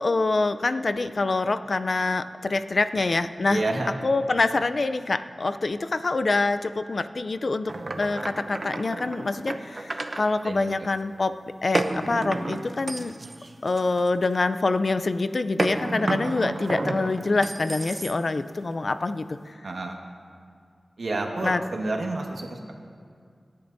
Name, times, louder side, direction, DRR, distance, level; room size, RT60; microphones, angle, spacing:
voice 1, 0.0-3.6 4.0-13.1 13.6-19.5 21.4-21.6, left 3 dB, 55° left, 11 dB, 0.4 m, -25 dB
voice 2, 3.5-3.9 10.4-10.9 19.6-20.0 21.0-22.7, right 2 dB, 75° right, 1 dB, 1.6 m, -29 dB
sound 1, 7.7-10.2 11.7-14.4 15.6-18.4, right 2 dB, 45° right, 0.8 m, -31 dB
26.5 x 10.5 x 2.7 m, 2.2 s
wide cardioid pair, 85°, 0 cm